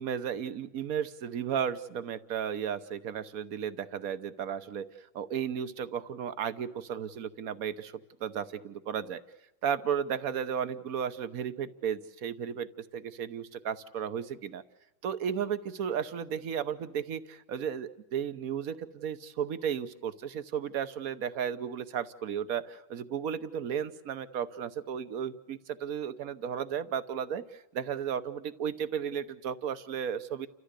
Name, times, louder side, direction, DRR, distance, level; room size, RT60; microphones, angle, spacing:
voice 1, 0.0-4.9 5.1-7.9 8.2-9.2 9.6-14.6 15.0-30.5, right 8 dB, 55° right, 12 dB, 1.2 m, -34 dB
29.5 x 14.0 x 8.2 m, 0.89 s
omnidirectional pair, 2.1 m